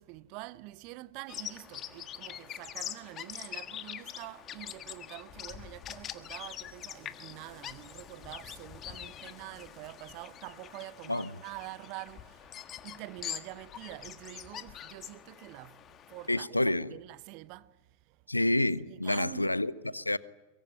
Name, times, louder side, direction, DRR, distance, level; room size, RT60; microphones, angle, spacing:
voice 1, 0.0-12.6 12.8-18.2 18.9-19.5 19.8-20.2, right 19 dB, 45° right, 1.0 m, -46 dB
Bird vocalization bird call bird song, 1.3-16.4, left 10 dB, 30° left, 1.5 m, -44 dB
voice 2, 16.3-16.9 18.3-20.2, left 1 dB, 85° left, 0.8 m, -28 dB
23.5 x 23.0 x 8.9 m
figure-of-eight pair, 90°, 0 cm